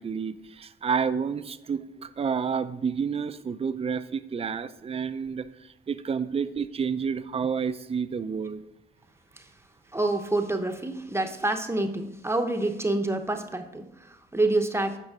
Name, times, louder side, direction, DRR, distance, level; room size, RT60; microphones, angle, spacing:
voice 1, 0.0-1.8 2.2-5.4 5.9-8.6, right 6 dB, 30° right, 11 dB, 0.6 m, -29 dB
voice 2, 9.9-15.0, right 2 dB, 15° right, 6 dB, 0.9 m, -27 dB
9.1 x 5.5 x 4.9 m, 0.91 s
cardioid pair, 90°, 20 cm